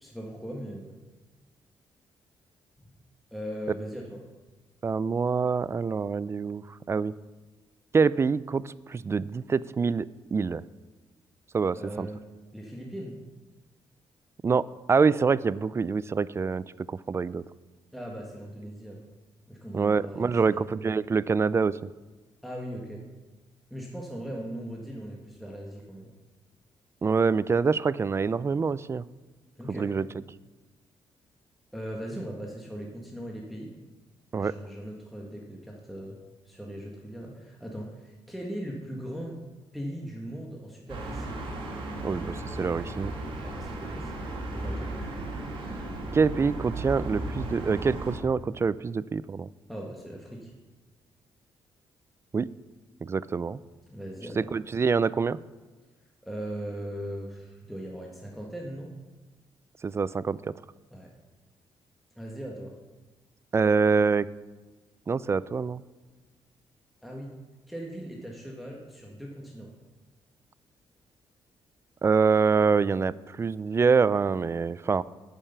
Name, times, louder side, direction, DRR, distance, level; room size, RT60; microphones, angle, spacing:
voice 1, 0.0-0.9 3.3-4.2 11.7-12.2 12.5-13.2 17.9-19.0 19.5-20.6 22.4-23.0 23.7-26.1 29.6-29.9 31.7-33.7 34.4-36.2 36.4-39.4 39.7-41.4 43.3-45.0 49.7-50.5 53.9-54.5 56.2-58.9 60.9-61.1 62.2-62.7 67.0-67.4 67.7-69.7, equal, ahead, -2 dB, 1.5 m, -39 dB
voice 2, 4.8-7.1 7.9-10.6 11.5-12.1 14.4-17.4 19.7-21.8 27.0-29.0 29.7-30.1 34.3-34.5 42.0-43.1 46.1-49.5 52.3-52.5 53.0-53.6 54.4-55.4 59.8-60.5 63.5-64.3 65.1-65.8 72.0-75.0, right 5 dB, 30° right, 18 dB, 0.3 m, -25 dB
sound 1, 40.9-48.2, right 1 dB, 70° right, 2.8 m, -35 dB
8.9 x 6.6 x 6.8 m, 1.2 s
cardioid pair, 90°, 9 cm